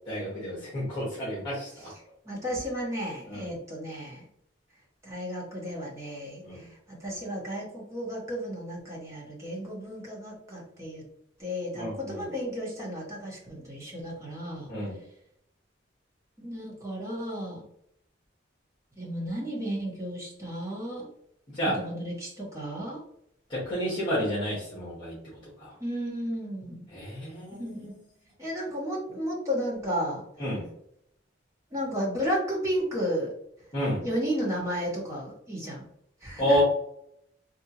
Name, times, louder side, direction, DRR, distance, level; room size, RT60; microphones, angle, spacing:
voice 1, 0.1-1.7 3.3-3.5 6.4-6.6 11.7-12.2 14.7-14.9 21.5-21.8 23.5-25.1 25.6-25.7 26.9-27.9 30.4-30.6 33.7-34.0 36.4-36.6, equal, 25° left, -8 dB, 1.4 m, -30 dB
voice 2, 2.3-4.2 5.0-11.0 11.4-14.7 16.4-17.6 19.0-21.1 21.7-23.0 25.8-26.9 27.6-28.0 28.4-30.2 31.7-33.3 34.0-35.9 36.2-36.6, equal, 15° right, -4 dB, 1.1 m, -33 dB
3.4 x 2.6 x 2.9 m, 0.72 s
head